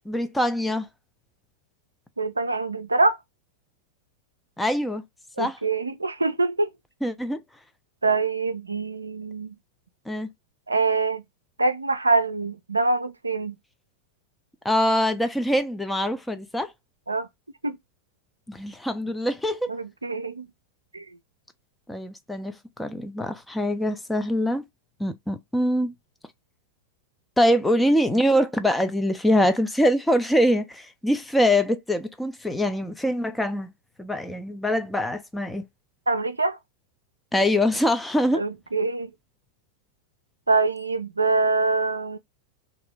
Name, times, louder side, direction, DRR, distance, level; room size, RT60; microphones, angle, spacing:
voice 1, 0.1-0.9 4.6-5.0 5.4-5.6 7.0-7.4 10.1-10.3 14.6-16.7 18.5-19.7 21.9-24.6 25.0-25.9 27.4-33.7 34.0-35.7 37.3-38.4, equal, 5° left, 0.4 m, -24 dB
voice 2, 2.2-3.2 5.4-6.7 8.0-9.5 10.7-11.2 11.6-13.6 17.1-17.3 17.6-17.8 19.7-20.5 20.9-21.1 36.1-36.6 38.3-39.1 40.5-42.2, right 3 dB, 80° right, 0.4 m, -24 dB
2.8 x 2.5 x 3.4 m
figure-of-eight pair, 90°, 0 cm